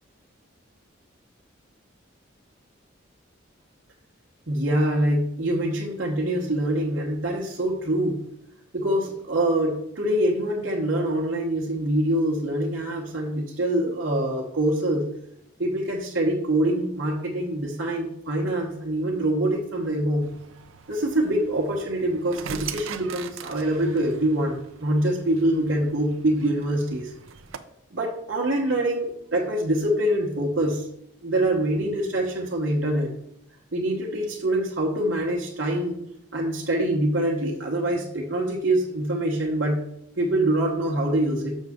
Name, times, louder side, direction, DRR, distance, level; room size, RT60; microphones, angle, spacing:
voice 1, 4.5-8.2 8.7-15.1 15.6-20.3 20.9-27.1 27.9-30.9 31.2-33.1 33.7-36.0 36.3-39.8 40.2-41.6, right 1 dB, 65° right, -3 dB, 1.0 m, -25 dB
sound 1, 20.2-27.6, right 7 dB, 85° right, 0.5 m, -41 dB
6.5 x 6.3 x 3.6 m, 0.76 s
head